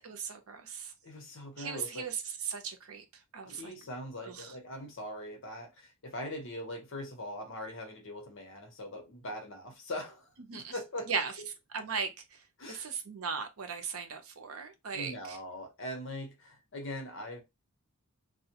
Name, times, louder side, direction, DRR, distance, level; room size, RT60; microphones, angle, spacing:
voice 1, 0.0-0.9 1.6-2.2 2.5-3.0 3.3-3.7 4.2-4.5 10.5-10.7 11.1-11.3 11.7-12.1 12.7-15.4, right 5 dB, 75° right, 0.6 m, -37 dB
voice 2, 1.0-2.0 3.4-11.5 12.6-12.9 14.9-17.4, left 1 dB, 60° left, 0.9 m, -41 dB
2.3 x 2.2 x 2.8 m
head